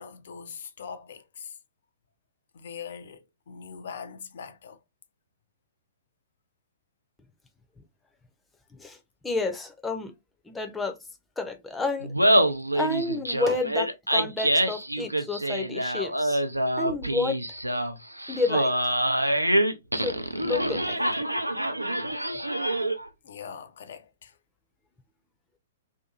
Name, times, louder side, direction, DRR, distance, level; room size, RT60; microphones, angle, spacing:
voice 1, 0.0-1.6 2.5-4.8 23.2-24.4, left 6 dB, 55° left, 0.4 m, -42 dB
voice 2, 9.2-10.1 10.4-11.0 11.4-12.1 12.7-16.4 16.8-17.4 18.3-18.7 19.9-21.0, left 3 dB, 5° left, 0.5 m, -30 dB
Laughter, 12.0-23.1, right 1 dB, 90° right, 0.4 m, -26 dB
2.7 x 2.5 x 2.4 m
figure-of-eight pair, 115°, 0 cm